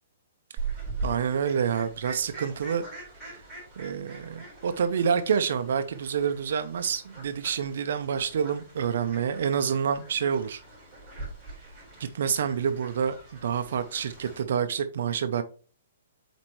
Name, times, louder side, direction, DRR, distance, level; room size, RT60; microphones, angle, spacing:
Fowl, 0.6-14.4, right 3 dB, 5° right, 3.7 m, -42 dB
voice 1, 1.0-2.8 3.8-10.6 12.0-13.1 13.4-15.4, right 7 dB, 60° right, 0.5 m, -27 dB
8.0 x 4.4 x 3.1 m
hypercardioid pair, 170°, 0 cm